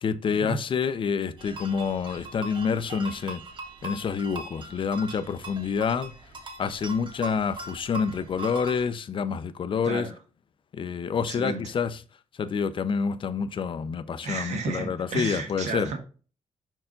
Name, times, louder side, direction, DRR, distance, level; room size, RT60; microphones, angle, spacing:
voice 1, 0.0-3.4 3.8-6.1 6.6-10.1 10.7-12.0 12.4-15.9, left 6 dB, 45° left, 0.6 m, -28 dB
sound 1, 1.4-8.8, right 2 dB, 45° right, 1.5 m, -40 dB
voice 2, 11.3-11.6 14.2-16.0, right 4 dB, 85° right, 1.5 m, -32 dB
5.6 x 4.5 x 3.8 m
cardioid pair, 105°, 12 cm